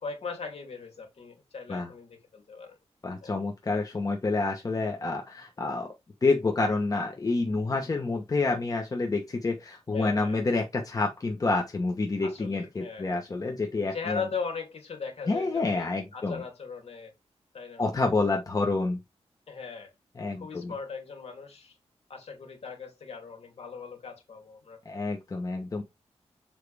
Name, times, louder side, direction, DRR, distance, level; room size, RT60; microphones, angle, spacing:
voice 1, 0.0-2.8 3.2-3.3 9.9-10.4 12.2-13.1 13.9-17.1 17.5-17.8 19.5-19.9 20.4-21.8 22.1-24.8, left 5 dB, 65° left, 2.8 m, -39 dB
voice 2, 3.0-5.9 6.2-14.2 15.3-16.4 17.8-19.0 20.2-20.7 24.8-25.8, left 3 dB, 30° left, 1.1 m, -28 dB
7.5 x 4.8 x 3.4 m
wide cardioid pair, 155°, 11 cm